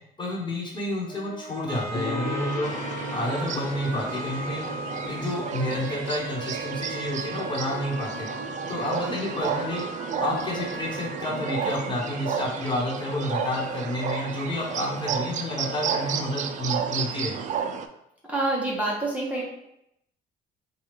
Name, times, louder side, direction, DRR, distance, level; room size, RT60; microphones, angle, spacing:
voice 1, 0.2-2.7 3.1-4.6 5.1-8.3 8.7-9.8 10.2-17.4, left 1 dB, 30° left, -3 dB, 1.2 m, -30 dB
sound 1, 1.1-12.1, right 1 dB, 75° right, 0.8 m, -39 dB
Gong, 1.9-9.4, left 1 dB, 45° left, 1.0 m, -38 dB
sound 2, 2.6-17.9, right 7 dB, 45° right, 0.4 m, -32 dB
voice 2, 18.3-19.4, right 2 dB, 10° right, -5 dB, 0.9 m, -26 dB
4.9 x 2.4 x 3.5 m, 0.82 s
cardioid pair, 110°, 17 cm